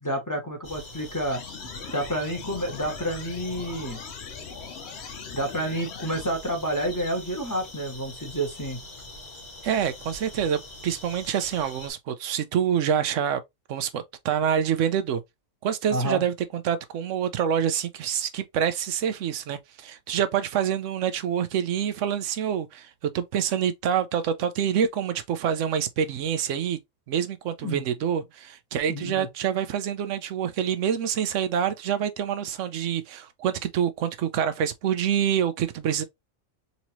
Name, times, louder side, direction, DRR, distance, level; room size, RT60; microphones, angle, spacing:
voice 1, 0.0-1.4 1.9-4.0 5.3-8.8 15.9-16.2 27.6-27.8 28.9-29.3, right 1 dB, 15° left, 1.2 m, -29 dB
sound 1, 0.6-11.9, left 2 dB, 35° left, 1.6 m, -43 dB
sound 2, 1.3-6.3, left 8 dB, 65° left, 0.9 m, -41 dB
voice 2, 9.6-13.4 13.7-15.2 15.6-26.8 27.1-36.0, right 8 dB, 80° right, 0.9 m, -26 dB
4.1 x 2.8 x 2.9 m
omnidirectional pair, 1.3 m